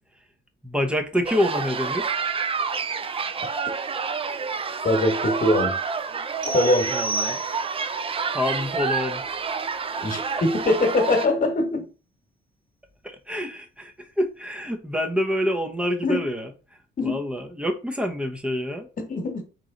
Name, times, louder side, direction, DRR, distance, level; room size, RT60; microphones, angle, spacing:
voice 1, 0.6-2.2 6.9-7.4 8.3-9.2 13.0-18.9, left 1 dB, 5° right, 0.8 m, -27 dB
sound 1, 1.2-11.3, right 5 dB, 30° right, 0.4 m, -28 dB
voice 2, 4.8-5.8 6.4-7.0 10.0-11.9 16.0-16.2 17.0-17.2 19.0-19.4, left 2 dB, 45° left, 1.4 m, -22 dB
sound 2, 6.4-8.0, right 2 dB, 75° right, 1.3 m, -31 dB
3.8 x 3.1 x 3.8 m
cardioid pair, 90°, 20 cm